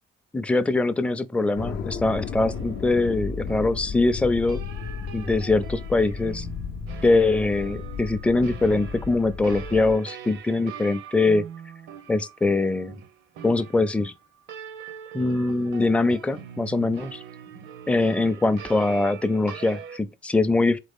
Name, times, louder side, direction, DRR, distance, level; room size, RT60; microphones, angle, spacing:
voice 1, 0.3-4.6 5.1-6.5 7.0-11.4 12.1-12.9 13.4-14.1 15.1-17.2 17.9-20.8, left 2 dB, 5° left, 0.4 m, -23 dB
sound 1, 1.6-10.0, left 6 dB, 65° left, 0.5 m, -34 dB
sound 2, 2.1-20.0, right 7 dB, 90° right, 0.8 m, -43 dB
4.0 x 3.7 x 3.6 m
cardioid pair, 90°, 20 cm